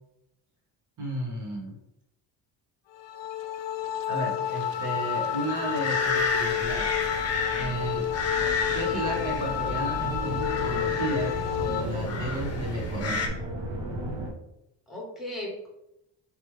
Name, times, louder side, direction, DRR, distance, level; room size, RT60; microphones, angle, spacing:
voice 1, 1.0-1.8 4.1-6.9 7.6-8.1 8.7-11.3 11.6-13.2, right 1 dB, 40° right, -1 dB, 1.5 m, -33 dB
sound 1, 2.9-11.8, left 10 dB, 65° left, 0.5 m, -30 dB
sound 2, 4.5-13.3, left 4 dB, 30° left, 0.8 m, -32 dB
sound 3, 6.0-14.3, right 1 dB, 65° right, 1.3 m, -35 dB
voice 2, 8.4-9.0 14.9-15.7, left 1 dB, ahead, -2 dB, 1.6 m, -38 dB
5.2 x 3.1 x 3.3 m, 0.84 s
cardioid pair, 115°, 47 cm